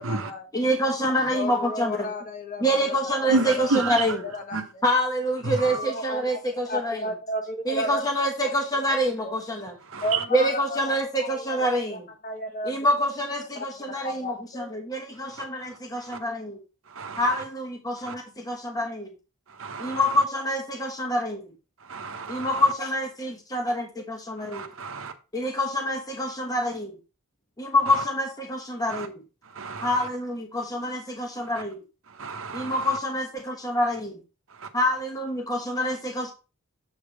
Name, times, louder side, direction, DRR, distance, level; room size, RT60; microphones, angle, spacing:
voice 1, 0.0-0.5 1.3-3.0 3.2-4.8 5.6-6.2 6.6-8.0 8.4-8.5 8.9-9.3 10.0-10.9 11.2-12.9 13.5-14.7, left 1 dB, 40° left, 1.3 m, -33 dB
voice 2, 0.5-2.1 2.6-4.2 4.8-7.0 7.7-9.7 10.3-12.0 12.6-16.6 17.2-19.1 19.8-21.4 22.3-24.7 25.3-26.9 27.6-29.1 29.8-31.8 32.5-34.1 34.7-36.3, equal, 15° left, 1.1 m, -26 dB
voice 3, 3.3-4.1 4.5-4.6 5.4-5.8 9.9-10.2 17.0-17.2 18.1-18.2 19.6-20.0 21.9-22.5 24.5-25.1 28.9-29.1 29.6-29.9 32.2-32.7, right 3 dB, 65° right, 0.9 m, -29 dB
7.4 x 3.6 x 4.9 m
head